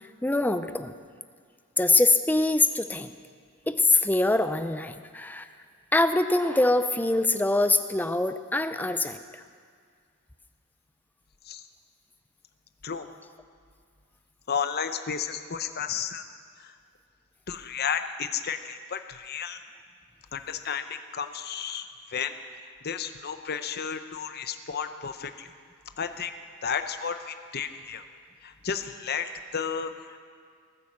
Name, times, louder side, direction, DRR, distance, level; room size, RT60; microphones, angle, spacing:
voice 1, 0.2-0.9 1.8-3.1 3.7-5.5 5.9-9.4, left 2 dB, 10° left, 10 dB, 0.5 m, -24 dB
voice 2, 14.5-16.3 16.6-16.7 17.5-19.6 20.3-21.9 22.1-22.3 22.8-25.5 26.0-26.3 26.6-28.0 28.4-30.2, left 7 dB, 45° left, 9 dB, 0.7 m, -32 dB
18.5 x 9.4 x 7.3 m, 2.1 s
head